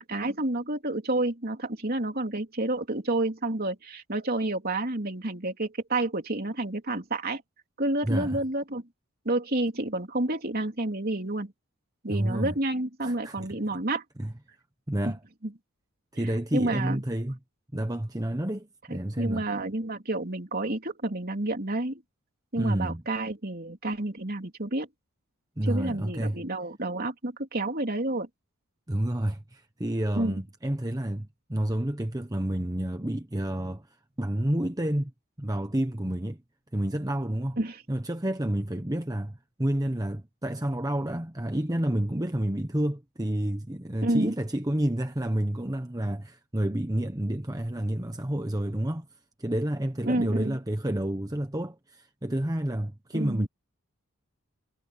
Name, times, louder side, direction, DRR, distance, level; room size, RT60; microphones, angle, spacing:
voice 1, 0.0-7.4 7.8-8.8 9.3-11.5 12.0-14.0 15.1-15.2 15.4-15.5 16.5-17.0 19.2-22.0 22.5-24.9 25.6-28.3 30.1-30.4 37.6-37.8 44.0-44.3 50.1-50.6 53.1-53.5, right 2 dB, 45° right, 3.5 m, -29 dB
voice 2, 8.0-8.4 12.1-12.6 13.0-13.6 14.2-14.3 14.9-15.2 16.1-17.4 17.7-19.4 22.5-23.0 25.6-26.4 28.9-33.9 34.2-35.1 35.4-36.4 36.7-37.6 37.9-49.1 49.4-53.5, right 1 dB, 15° right, 1.1 m, -29 dB
head